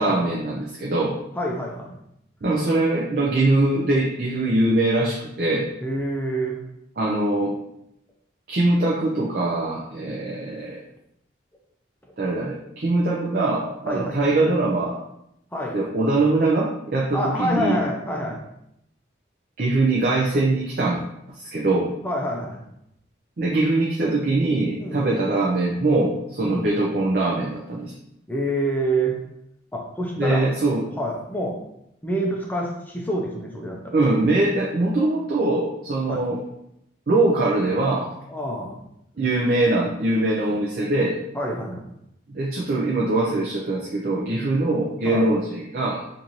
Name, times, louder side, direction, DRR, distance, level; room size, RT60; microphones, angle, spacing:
voice 1, 0.0-1.2 2.4-5.7 7.0-7.5 8.5-10.8 12.2-15.0 15.7-17.8 19.6-21.0 21.3-21.9 23.4-27.9 30.2-30.9 33.9-36.4 37.1-38.1 39.2-41.2 42.3-46.0, right 2 dB, 50° right, -4 dB, 0.5 m, -22 dB
voice 2, 1.3-1.9 5.8-6.6 10.0-10.2 13.9-14.2 15.5-15.8 17.1-18.4 22.0-22.6 24.8-25.1 26.4-26.7 28.3-29.2 29.7-31.6 32.0-34.0 36.1-36.2 38.3-38.8 41.3-41.9 45.0-45.3, right 1 dB, 10° left, -1 dB, 0.5 m, -27 dB
3.0 x 2.6 x 3.9 m, 0.79 s
head